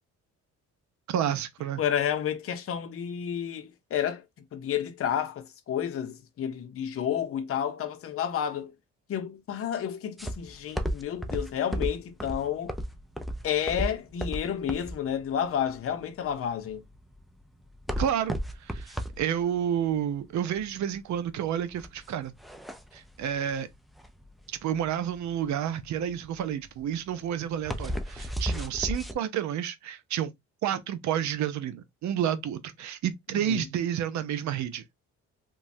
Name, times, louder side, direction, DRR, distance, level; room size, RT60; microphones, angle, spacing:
voice 1, 1.1-1.8 18.0-22.3 22.9-23.7 24.5-30.3 30.6-34.8, right 9 dB, 70° right, 0.6 m, -30 dB
voice 2, 1.8-4.2 4.5-8.7 9.1-12.7 13.4-16.8 33.5-33.6, left 9 dB, 50° left, 0.7 m, -30 dB
sound 1, 10.2-29.1, equal, ahead, 0.4 m, -34 dB
3.0 x 2.3 x 2.6 m
cardioid pair, 90°, 30 cm